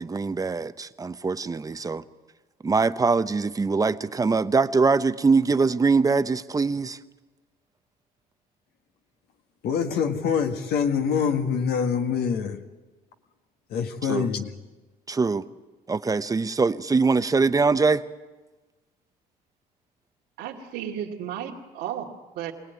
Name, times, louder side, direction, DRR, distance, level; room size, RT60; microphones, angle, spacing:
voice 1, 0.0-2.0 2.6-7.0 14.1-14.3 15.1-15.4 15.9-18.0, right 4 dB, 20° right, 0.9 m, -23 dB
voice 2, 9.6-12.6 13.7-14.5, left 7 dB, 70° left, 1.8 m, -25 dB
voice 3, 20.4-22.5, right 9 dB, 85° right, 2.5 m, -34 dB
24.5 x 18.0 x 9.4 m
cardioid pair, 110°, 17 cm